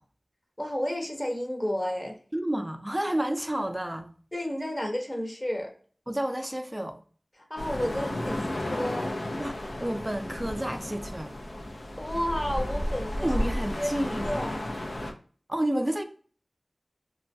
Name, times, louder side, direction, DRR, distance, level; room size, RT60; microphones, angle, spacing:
voice 1, 0.6-2.2 4.3-5.7 7.5-9.1 11.7-13.3 13.8-14.6, equal, 25° left, 0.7 m, -32 dB
voice 2, 2.3-4.1 6.1-7.0 9.4-11.4 13.2-14.3 15.5-16.0, right 1 dB, 20° right, 0.4 m, -30 dB
sound 1, 7.6-15.1, left 1 dB, 80° left, 0.4 m, -33 dB
3.0 x 2.2 x 2.6 m
wide cardioid pair, 55°, 0 cm